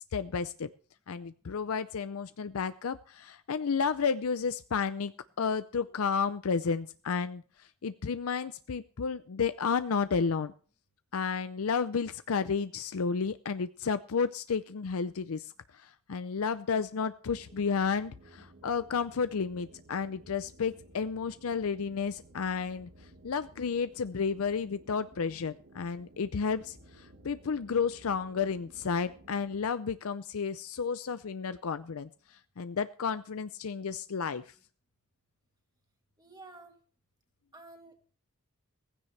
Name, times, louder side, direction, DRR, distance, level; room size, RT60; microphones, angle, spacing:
voice 1, 0.1-0.7 1.1-5.1 5.4-7.4 7.8-10.5 11.1-15.5 15.8-22.9 23.2-32.1 32.6-34.4, left 5 dB, 65° left, 13 dB, 0.5 m, -32 dB
sound 1, 17.2-29.7, right 1 dB, 50° right, 1.8 m, -56 dB
voice 2, 36.2-36.8 37.5-38.1, right 2 dB, 20° right, 3 dB, 2.1 m, -51 dB
16.5 x 15.5 x 3.3 m, 0.42 s
head